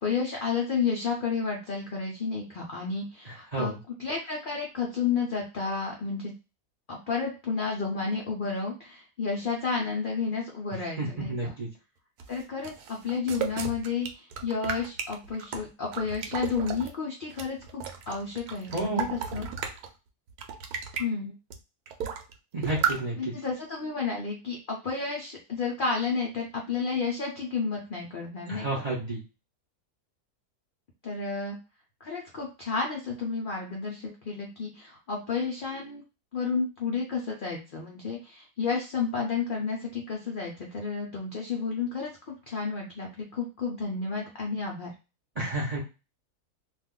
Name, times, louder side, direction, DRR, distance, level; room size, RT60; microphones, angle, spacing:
voice 1, 0.0-3.7 4.0-6.3 6.9-11.5 12.3-19.5 21.0-21.3 23.2-28.9 31.0-31.6 32.0-36.0 36.3-44.9, left 5 dB, 75° left, -1 dB, 0.4 m, -31 dB
voice 2, 11.0-11.7 18.7-19.1 22.5-23.2 28.5-29.2 45.4-45.8, right 2 dB, 45° right, -4 dB, 0.5 m, -30 dB
sound 1, 12.2-16.9 17.3-19.9 20.3-21.0 21.5-21.6 21.9-22.3 22.6-23.0, right 7 dB, 75° right, 1.0 m, -34 dB
2.5 x 2.3 x 3.6 m, 0.30 s
omnidirectional pair, 1.7 m